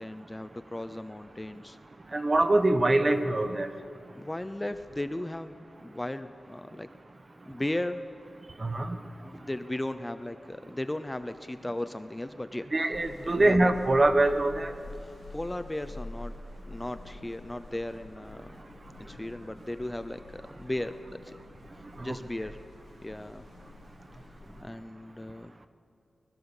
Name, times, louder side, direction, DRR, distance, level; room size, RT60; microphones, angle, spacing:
voice 1, 0.0-1.8 4.1-5.5 5.8-6.9 7.5-8.0 9.2-12.6 13.2-13.7 15.0-16.4 16.7-18.5 19.0-21.4 22.0-22.6 23.0-23.4 24.6-25.5, left 1 dB, 15° left, 10 dB, 0.6 m, -36 dB
voice 2, 2.1-3.7 8.6-9.0 12.7-14.7 22.1-22.2, right 2 dB, 30° right, 8 dB, 1.3 m, -24 dB
sound 1, 12.9-24.6, left 2 dB, 75° left, 3.5 m, -47 dB
24.5 x 21.0 x 7.2 m, 2.7 s
wide cardioid pair, 150°, 0 cm